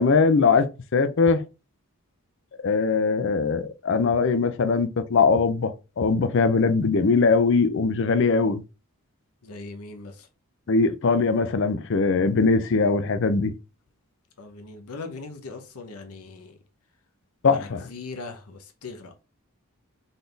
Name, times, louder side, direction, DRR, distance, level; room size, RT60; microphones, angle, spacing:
voice 1, 0.0-1.4 2.6-8.6 10.7-13.5 17.4-17.8, left 4 dB, 55° left, 0.5 m, -21 dB
voice 2, 9.4-10.3 14.4-16.6 17.5-19.2, left 3 dB, 85° left, 0.9 m, -40 dB
4.0 x 3.9 x 3.4 m
head